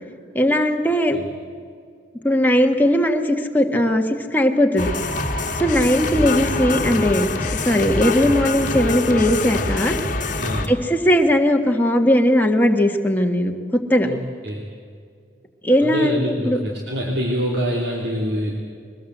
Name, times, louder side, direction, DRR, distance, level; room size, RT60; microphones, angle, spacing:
voice 1, 0.3-1.2 2.2-4.9 5.6-9.9 10.7-14.1 15.6-16.6, equal, 10° left, 2 dB, 1.6 m, -18 dB
sound 1, 4.8-10.7, left 2 dB, 45° left, 1.6 m, -24 dB
voice 2, 10.4-10.7 14.0-14.7 15.8-18.5, equal, 60° right, -2 dB, 2.9 m, -25 dB
23.0 x 20.0 x 8.0 m, 2.2 s
head